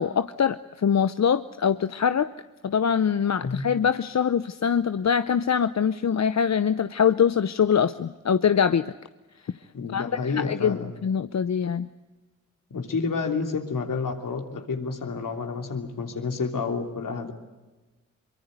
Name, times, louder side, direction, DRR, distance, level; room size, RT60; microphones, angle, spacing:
voice 1, 0.0-2.3 2.6-8.9 9.9-10.0 10.3-10.8 11.0-11.9, left 7 dB, 55° left, 0.8 m, -23 dB
voice 2, 9.7-10.9 12.7-17.3, left 4 dB, 75° left, 3.2 m, -29 dB
23.5 x 22.5 x 8.2 m
cardioid pair, 45°, 33 cm